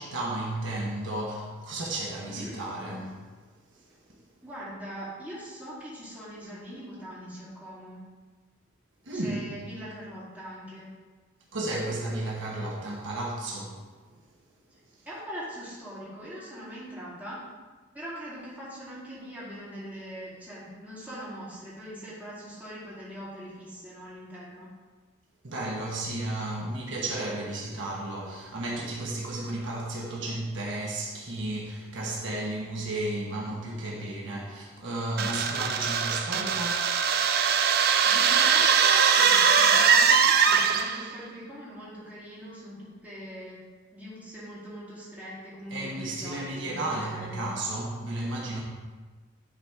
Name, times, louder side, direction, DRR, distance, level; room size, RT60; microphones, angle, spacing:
voice 1, 0.0-3.2 4.1-4.2 9.0-9.5 11.5-13.8 25.4-36.9 45.7-48.6, right 1 dB, 65° right, -3 dB, 1.3 m, -33 dB
voice 2, 2.3-2.6 4.4-8.0 9.1-10.9 14.7-17.4 17.9-24.7 38.0-47.5, equal, 5° right, -9 dB, 2.5 m, -42 dB
sound 1, 35.2-41.1, right 6 dB, 45° right, 0.4 m, -21 dB
10.5 x 4.1 x 4.6 m, 1.4 s
head